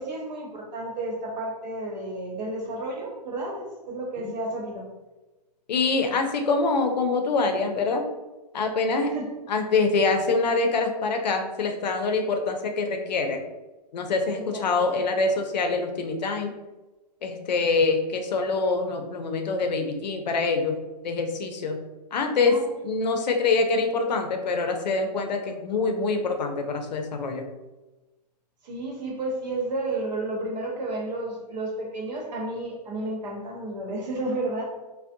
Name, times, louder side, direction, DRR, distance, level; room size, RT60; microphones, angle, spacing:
voice 1, 0.0-4.9 9.0-9.3 14.3-14.6 22.5-22.7 28.6-34.7, right 2 dB, 80° right, -1 dB, 1.0 m, -32 dB
voice 2, 5.7-8.0 8.5-9.1 9.5-13.4 13.9-16.5 17.2-20.8 21.0-21.8 22.1-22.6 22.8-27.5, left 3 dB, 90° left, 5 dB, 0.5 m, -25 dB
2.5 x 2.1 x 2.5 m, 1.1 s
hypercardioid pair, 145°, 21 cm